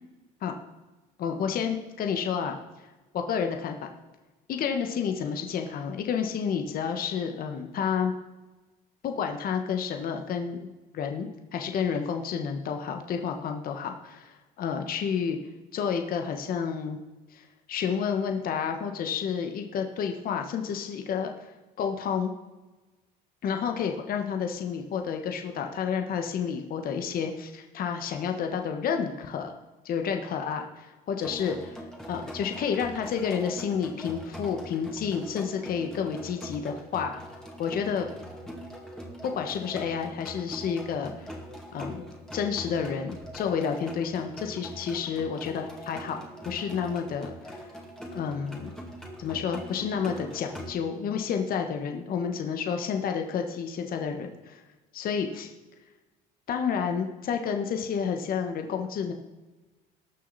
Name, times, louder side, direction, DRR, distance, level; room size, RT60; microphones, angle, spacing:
voice 1, 1.2-2.6 3.1-3.9 4.5-8.1 9.0-15.4 15.7-17.0 17.3-21.3 21.8-22.3 23.4-29.5 29.8-31.8 32.1-37.2 37.6-38.1 39.2-41.3 41.7-42.0 42.3-47.6 48.1-48.7 49.2-54.6 54.9-55.5 56.5-59.1, left 7 dB, 60° left, 4 dB, 1.3 m, -30 dB
sound 1, 31.2-50.7, equal, 5° left, 2.4 m, -42 dB
19.0 x 6.5 x 4.1 m, 1.1 s
cardioid pair, 110°, 17 cm